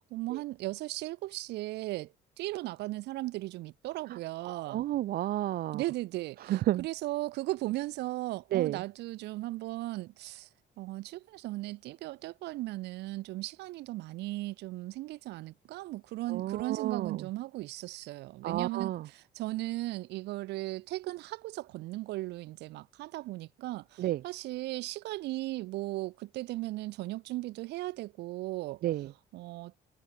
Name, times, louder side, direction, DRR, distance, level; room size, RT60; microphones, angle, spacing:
voice 1, 0.1-2.1 2.4-4.8 5.7-10.5 10.8-28.8 29.3-29.8, right 18 dB, 85° right, 7.1 m, -37 dB
voice 2, 4.4-5.8 6.4-6.9 8.5-8.8 16.3-17.3 18.4-19.1 24.0-24.2 28.8-29.1, right 14 dB, 65° right, 0.7 m, -31 dB
cardioid pair, 110°, 17 cm